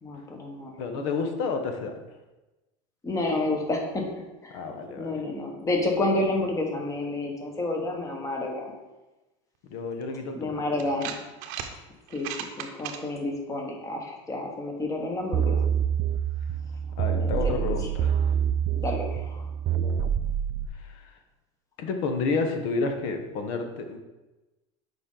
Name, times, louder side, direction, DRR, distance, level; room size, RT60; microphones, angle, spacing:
voice 1, 0.0-0.7 3.0-4.1 4.4-4.6 5.0-8.7 10.4-11.2 12.1-12.3 12.6-15.6 17.2-17.5 18.8-19.5, left 2 dB, 20° left, 1 dB, 1.3 m, -29 dB
voice 2, 0.8-2.0 4.5-5.2 9.6-11.0 17.0-18.3 20.7-21.2 21.8-24.0, left 4 dB, 70° left, 6 dB, 1.0 m, -31 dB
sound 1, 10.0-10.1 10.8-11.7 12.1-13.0, right 9 dB, 60° right, 0.8 m, -36 dB
sound 2, 15.3-20.7, right 8 dB, 35° right, 0.4 m, -26 dB
6.9 x 5.2 x 3.8 m, 1.1 s
supercardioid pair, 130°, 16 cm